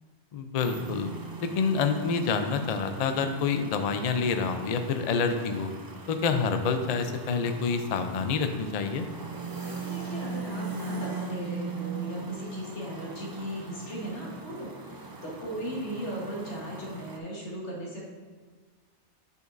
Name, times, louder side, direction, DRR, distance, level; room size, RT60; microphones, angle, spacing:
voice 1, 0.3-1.1 1.4-5.7 6.1-9.1, left 5 dB, 50° left, 7 dB, 0.5 m, -27 dB
sound 1, 0.6-17.2, right 4 dB, 30° right, 0.4 m, -40 dB
voice 2, 9.8-18.0, right 1 dB, 90° left, -3 dB, 1.7 m, -37 dB
9.5 x 5.2 x 2.6 m, 1.4 s
omnidirectional pair, 1.1 m